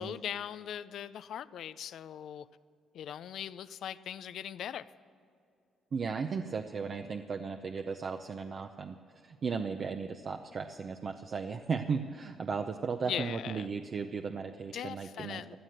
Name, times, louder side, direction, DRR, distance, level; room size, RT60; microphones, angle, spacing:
voice 1, 0.0-2.5 2.9-4.9 13.1-13.7 14.7-15.6, left 9 dB, 70° left, 15 dB, 0.4 m, -40 dB
voice 2, 5.9-9.0 9.2-15.6, right 5 dB, 50° right, 5 dB, 0.7 m, -36 dB
17.0 x 11.5 x 6.6 m, 2.4 s
cardioid pair, 90°, 0 cm